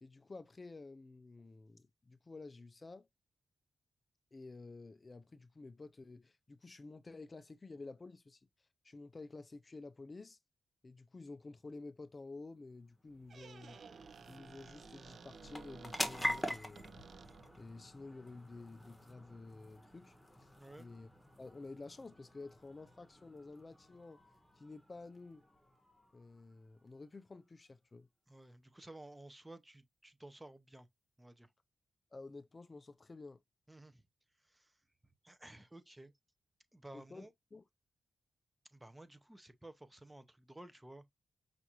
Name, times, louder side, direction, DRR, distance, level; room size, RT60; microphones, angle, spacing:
voice 1, 0.0-3.1 4.3-8.5 8.8-10.4 10.8-13.8 14.3-17.0 17.6-20.5 20.8-21.1 21.4-24.2 24.6-25.4 26.1-28.1 32.1-33.4 36.9-37.6, left 3 dB, 35° left, 0.4 m, -51 dB
sound 1, 12.5-27.4, left 1 dB, 5° left, 1.1 m, -46 dB
Squeak, 13.1-17.7, right 6 dB, 70° right, 0.4 m, -55 dB
voice 2, 20.6-20.9 28.3-30.9 31.2-31.5 33.7-34.0 34.4-34.8 35.2-36.1 36.7-37.3 38.7-41.0, right 1 dB, 15° right, 0.6 m, -54 dB
5.7 x 2.5 x 2.8 m
cardioid pair, 75°, 0 cm